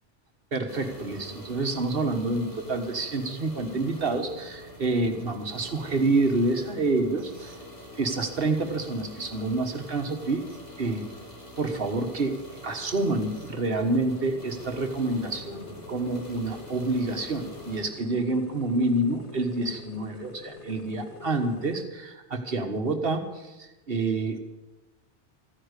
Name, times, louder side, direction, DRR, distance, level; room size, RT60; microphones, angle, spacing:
voice 1, 0.5-7.6 7.9-10.4 10.8-11.1 11.6-24.4, right 2 dB, 55° right, 6 dB, 1.7 m, -28 dB
sound 1, 0.7-17.8, left 1 dB, 35° left, 3.1 m, -45 dB
sound 2, 12.7-21.8, left 4 dB, 75° left, 1.6 m, -47 dB
14.0 x 10.0 x 8.2 m, 1.1 s
omnidirectional pair, 1.2 m